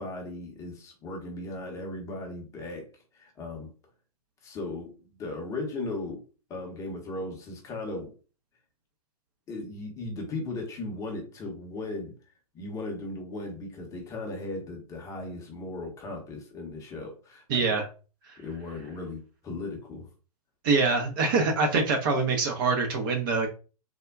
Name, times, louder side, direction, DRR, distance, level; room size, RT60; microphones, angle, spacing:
voice 1, 0.0-2.9 3.1-3.7 4.4-4.9 5.2-6.2 6.5-8.1 9.5-12.1 12.5-17.6 18.4-20.1, left 2 dB, 15° left, 2 dB, 0.7 m, -37 dB
voice 2, 17.5-17.9 20.6-23.5, right 4 dB, 35° right, 3 dB, 0.5 m, -24 dB
3.4 x 2.1 x 2.2 m, 0.34 s
figure-of-eight pair, 115°, 20 cm